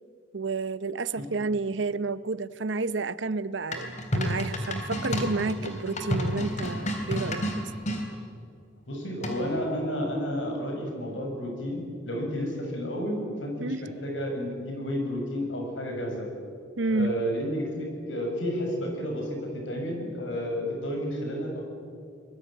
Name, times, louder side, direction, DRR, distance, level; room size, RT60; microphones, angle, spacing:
voice 1, 0.3-7.7 13.6-13.8 16.8-17.1, right 3 dB, 80° right, 16 dB, 0.8 m, -30 dB
sound 1, 3.7-8.0 9.2-9.6, equal, 40° left, 3.5 m, -30 dB
voice 2, 8.9-16.3 16.9-21.6, equal, 90° left, 2 dB, 7.0 m, -31 dB
26.0 x 21.0 x 9.0 m, 2.5 s
head